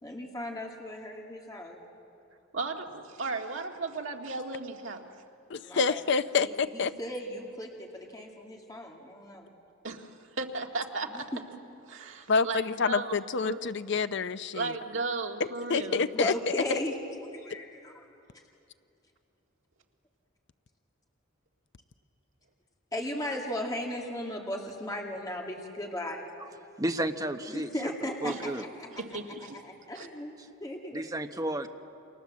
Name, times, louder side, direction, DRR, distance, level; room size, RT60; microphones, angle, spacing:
voice 1, 0.0-1.8 5.6-6.0 6.4-6.5 7.0-9.5 11.3-11.4 16.1-16.9 17.3-17.9 22.9-26.2 27.5-28.9 29.6-31.0, left 1 dB, 20° left, 0 dB, 2.2 m, -36 dB
voice 2, 2.5-5.1 9.8-10.1 10.4-11.3 11.9-13.6 14.5-16.1 28.2-28.4 28.9-29.6 29.9-30.1, right 3 dB, 75° right, 2 dB, 2.0 m, -35 dB
voice 3, 5.5-6.9 12.3-14.7 15.7-16.8, left 5 dB, 60° left, 12 dB, 0.6 m, -28 dB
voice 4, 26.8-27.7 28.2-28.6 30.9-31.7, right 1 dB, 20° right, 6 dB, 1.1 m, -32 dB
29.0 x 26.0 x 7.5 m, 2.7 s
head